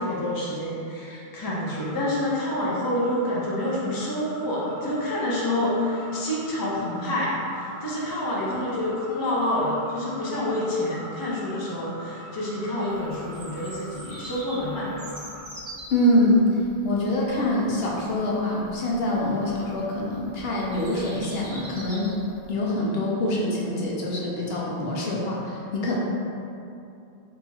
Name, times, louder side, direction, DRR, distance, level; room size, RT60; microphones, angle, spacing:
voice 1, 0.0-14.9, left 1 dB, 30° left, -6 dB, 0.4 m, -28 dB
sound 1, 1.6-15.4, equal, 50° left, 1.1 m, -43 dB
Bird vocalization bird call bird song, 12.9-22.5, right 1 dB, 35° right, 0.8 m, -45 dB
voice 2, 15.9-16.5 16.8-22.1 22.5-26.0, left 1 dB, 70° left, -4 dB, 0.8 m, -25 dB
2.9 x 2.4 x 4.0 m, 2.7 s
omnidirectional pair, 1.1 m